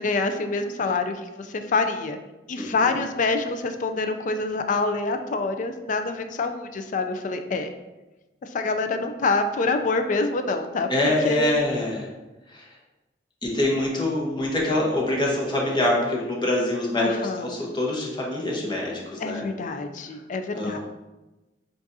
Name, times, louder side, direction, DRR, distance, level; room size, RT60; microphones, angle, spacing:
voice 1, 0.0-2.2 2.5-7.7 8.4-11.6 17.0-17.5 19.2-20.8, left 3 dB, 45° left, 7 dB, 0.4 m, -26 dB
voice 2, 2.6-2.9 10.9-12.1 12.5-12.6 13.4-19.4 20.5-20.8, left 1 dB, 25° left, -3 dB, 1.0 m, -25 dB
7.2 x 2.5 x 2.6 m, 1.1 s
head